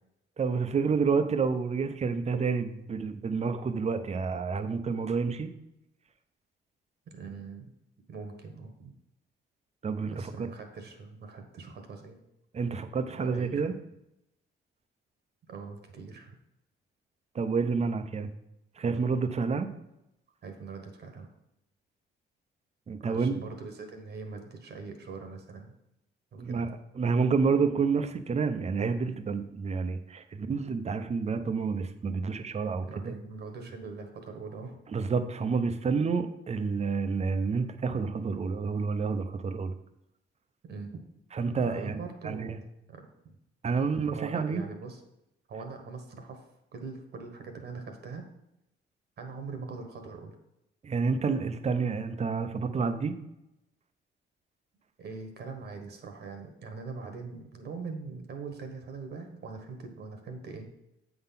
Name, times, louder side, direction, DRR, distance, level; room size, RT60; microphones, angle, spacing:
voice 1, 0.4-5.5 9.8-10.5 12.5-13.7 17.3-18.3 18.8-19.7 22.9-23.4 26.4-26.7 27.0-33.1 34.9-39.7 41.3-42.0 42.2-42.6 43.6-44.6 50.8-53.1, right 5 dB, 35° right, 8 dB, 0.7 m, -29 dB
voice 2, 7.1-7.7 8.1-8.9 10.1-12.2 13.2-13.7 15.5-16.3 20.4-21.3 23.0-25.7 26.3-26.6 32.9-34.8 40.7-41.0 41.6-42.5 42.9-43.3 44.1-45.0 45.5-48.2 49.2-50.4 55.0-60.7, right 4 dB, 55° right, 5 dB, 1.2 m, -42 dB
7.8 x 3.9 x 5.7 m, 0.87 s
cardioid pair, 90°, 20 cm